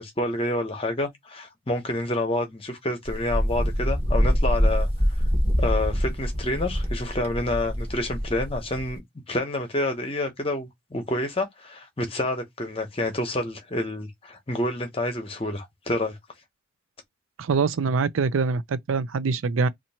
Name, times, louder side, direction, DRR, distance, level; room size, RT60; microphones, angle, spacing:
voice 1, 0.0-4.9 5.6-9.0 9.3-16.2, left 1 dB, 30° left, 0.9 m, -28 dB
Wind, 3.1-9.0, equal, 30° right, 1.1 m, -25 dB
voice 2, 17.4-19.7, right 4 dB, 85° right, 0.4 m, -24 dB
2.9 x 2.5 x 4.2 m
head